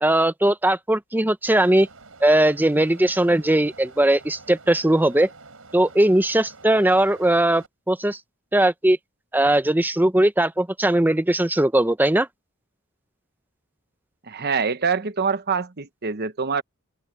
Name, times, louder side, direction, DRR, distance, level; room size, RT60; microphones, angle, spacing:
voice 1, 0.0-1.9 2.2-5.3 5.7-8.2 8.5-9.0 9.3-12.3, right 1 dB, 10° right, 0.7 m, -19 dB
sound 1, 1.5-7.7, right 3 dB, 75° right, 5.9 m, -47 dB
voice 2, 14.3-16.6, right 5 dB, 50° right, 1.1 m, -25 dB
open air
head